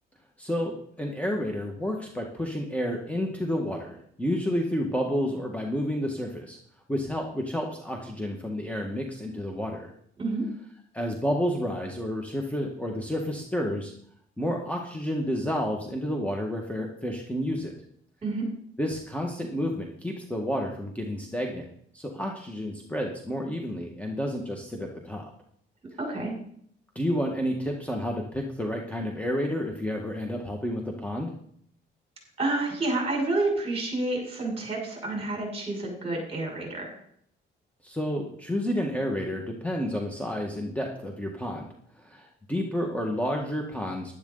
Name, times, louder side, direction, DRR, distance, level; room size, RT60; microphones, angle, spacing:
voice 1, 0.4-6.6 6.9-9.9 10.9-13.9 14.4-17.7 18.8-21.7 21.9-25.2 27.0-31.3 37.8-41.7 42.0-44.1, equal, 5° left, 1 dB, 1.8 m, -30 dB
voice 2, 26.0-26.3 32.4-37.0, right 2 dB, 30° right, 0 dB, 6.5 m, -29 dB
12.0 x 11.5 x 4.1 m, 0.65 s
cardioid pair, 90°, 20 cm